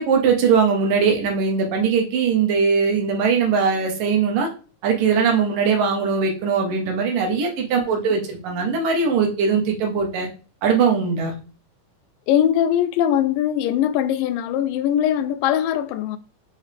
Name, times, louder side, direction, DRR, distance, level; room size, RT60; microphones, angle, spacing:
voice 1, 0.0-4.5 4.8-10.3 10.6-11.3, right 5 dB, 80° right, 3.0 m, -20 dB
voice 2, 7.8-8.1 12.3-16.2, left 10 dB, 90° left, 2.3 m, -21 dB
6.5 x 4.7 x 3.5 m
omnidirectional pair, 3.8 m